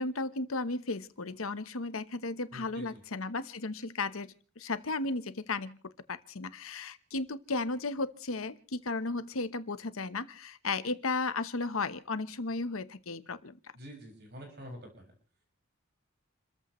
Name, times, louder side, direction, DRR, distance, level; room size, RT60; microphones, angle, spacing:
voice 1, 0.0-13.6, left 3 dB, 85° left, 12 dB, 1.1 m, -35 dB
voice 2, 2.5-2.9 13.8-15.1, equal, 50° right, 2 dB, 6.1 m, -46 dB
29.0 x 14.5 x 3.2 m, 0.38 s
head